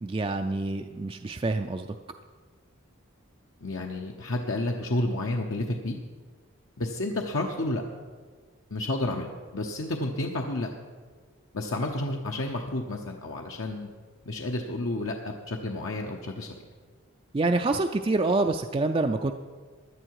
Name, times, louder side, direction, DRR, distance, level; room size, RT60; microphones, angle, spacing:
voice 1, 0.0-1.9 17.3-19.3, right 2 dB, 25° right, 5 dB, 0.4 m, -26 dB
voice 2, 3.6-6.0 6.8-7.8 8.7-10.7 11.5-13.9 14.3-16.5, left 2 dB, 70° left, 1 dB, 0.9 m, -31 dB
16.5 x 11.0 x 4.8 m, 1.5 s
head